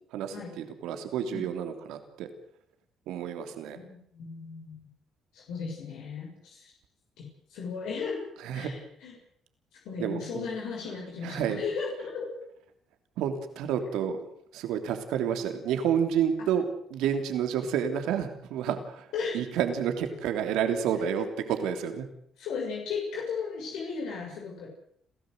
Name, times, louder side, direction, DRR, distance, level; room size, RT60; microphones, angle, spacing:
voice 1, 0.1-2.3 3.1-3.8 8.4-8.7 10.0-10.5 11.2-11.6 13.2-14.2 14.5-19.1 19.3-22.0, right 8 dB, 85° right, 7 dB, 3.2 m, -30 dB
voice 2, 3.7-4.7 5.3-6.7 7.2-8.3 8.5-9.1 9.7-12.4 19.1-19.4 22.4-24.7, left 5 dB, 80° left, -1 dB, 6.6 m, -36 dB
30.0 x 14.0 x 8.0 m, 0.68 s
cardioid pair, 80°, 0 cm